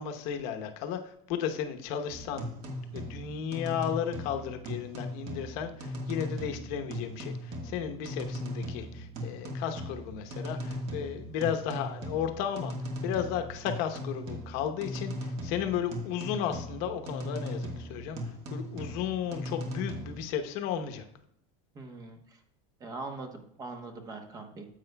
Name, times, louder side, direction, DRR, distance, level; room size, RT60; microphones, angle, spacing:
voice 1, 0.0-12.7 13.0-18.2 18.5-21.1, left 9 dB, 55° left, 6 dB, 1.0 m, -34 dB
sound 1, 2.1-20.2, equal, 40° right, 1.5 m, -38 dB
voice 2, 21.7-22.4 22.8-24.7, right 3 dB, 20° right, 5 dB, 1.0 m, -42 dB
9.8 x 7.9 x 2.2 m, 0.73 s
supercardioid pair, 160°, 17 cm